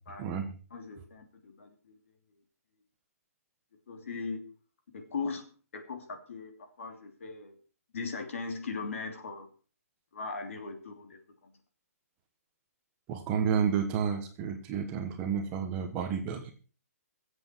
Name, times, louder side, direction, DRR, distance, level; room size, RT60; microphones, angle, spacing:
voice 1, 0.2-0.5 13.1-16.5, right 7 dB, 15° right, 4 dB, 1.2 m, -31 dB
voice 2, 0.7-2.0 3.9-4.4 4.9-5.5 5.7-7.5 7.9-9.5 10.1-11.5, left 4 dB, 55° left, 6 dB, 2.9 m, -39 dB
21.0 x 8.1 x 4.5 m, 0.37 s
hypercardioid pair, 175°, 8 cm